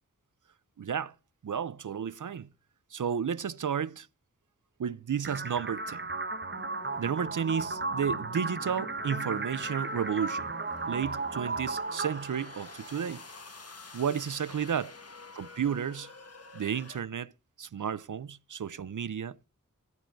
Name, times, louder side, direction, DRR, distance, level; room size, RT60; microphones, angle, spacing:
voice 1, 0.8-1.1 1.4-2.5 2.9-4.1 4.8-6.0 7.0-10.5 10.9-13.2 13.9-14.9 15.3-16.1 16.5-17.3 17.6-19.5, right 7 dB, 75° right, 0.6 m, -32 dB
sound 1, 5.2-13.2, right 3 dB, 40° right, 1.0 m, -35 dB
sound 2, 6.5-17.0, left 3 dB, 50° left, 1.6 m, -49 dB
13.5 x 10.5 x 4.5 m
wide cardioid pair, 75°, 31 cm